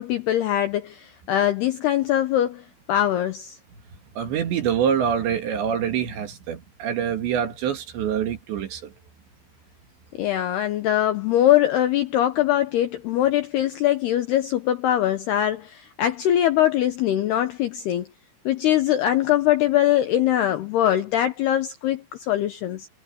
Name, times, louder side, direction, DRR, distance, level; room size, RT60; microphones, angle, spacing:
voice 1, 0.0-3.6 10.1-18.1 18.5-22.9, left 12 dB, 75° left, 2.4 m, -22 dB
voice 2, 4.2-8.9, right 8 dB, 65° right, 4.2 m, -25 dB
omnidirectional pair, 5.9 m